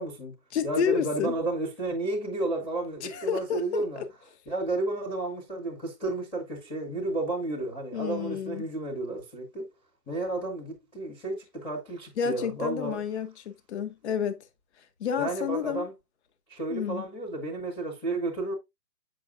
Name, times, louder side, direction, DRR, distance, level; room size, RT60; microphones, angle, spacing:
voice 1, 0.0-0.3 0.6-4.0 4.5-9.7 10.1-13.0 15.2-15.9 16.5-18.5, right 2 dB, 10° left, 0.8 m, -32 dB
voice 2, 0.5-1.3 3.0-4.0 7.9-8.7 12.2-14.4 15.0-15.9 16.7-17.1, left 7 dB, 40° left, 1.0 m, -30 dB
8.1 x 6.3 x 2.5 m
hypercardioid pair, 155°, 50 cm